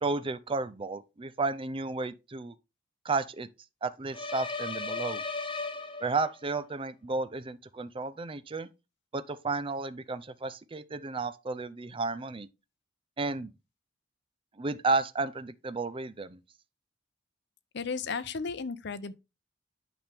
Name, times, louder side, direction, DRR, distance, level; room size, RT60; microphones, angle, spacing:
voice 1, 0.0-2.6 3.0-3.5 3.8-5.2 6.0-8.7 9.1-12.5 13.2-13.5 14.6-16.4, right 3 dB, 30° right, 0.5 m, -32 dB
sound 1, 4.1-6.5, left 3 dB, 30° left, 1.0 m, -36 dB
voice 2, 17.7-19.1, left 5 dB, 65° left, 0.7 m, -34 dB
8.7 x 6.0 x 3.5 m
head